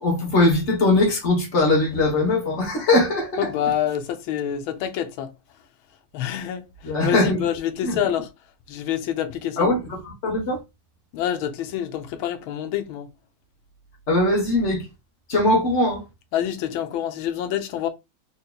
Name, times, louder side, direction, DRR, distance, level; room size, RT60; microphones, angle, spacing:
voice 1, 0.0-3.5 6.8-7.4 7.8-8.0 9.6-10.6 14.1-14.9 15.3-16.0, left 2 dB, 40° left, 1.2 m, -20 dB
voice 2, 3.4-5.3 6.1-8.3 8.7-9.7 11.1-13.1 16.3-17.9, left 10 dB, 85° left, 1.5 m, -27 dB
3.9 x 2.8 x 2.3 m
omnidirectional pair, 2.2 m